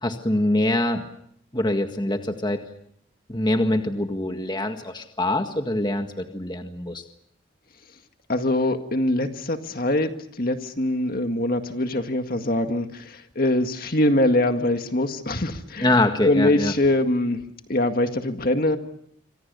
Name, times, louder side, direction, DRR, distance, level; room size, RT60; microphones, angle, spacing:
voice 1, 0.0-1.0 1.5-2.6 3.3-7.0 15.8-16.7, left 1 dB, 20° left, 5 dB, 1.7 m, -24 dB
voice 2, 8.3-10.1 10.4-15.9 16.2-17.4 17.7-18.8, left 1 dB, 45° left, 6 dB, 1.9 m, -23 dB
28.0 x 25.5 x 6.9 m, 0.71 s
head